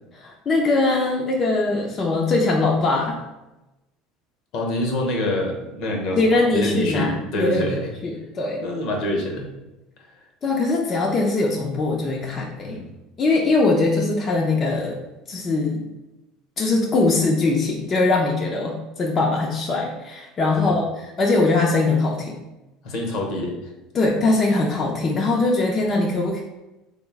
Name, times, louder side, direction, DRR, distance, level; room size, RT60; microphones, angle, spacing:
voice 1, 0.2-3.2 6.1-7.8 8.0-8.6 10.4-12.8 13.2-15.0 15.3-15.8 16.6-20.9 21.2-22.4 23.9-26.4, left 3 dB, 40° left, -1 dB, 0.5 m, -21 dB
voice 2, 4.5-6.2 6.5-7.9 8.6-9.5 12.6-12.9 20.6-20.8 22.8-23.7, left 1 dB, 65° left, 1 dB, 0.8 m, -26 dB
3.7 x 2.0 x 3.5 m, 0.99 s
hypercardioid pair, 80°, 0 cm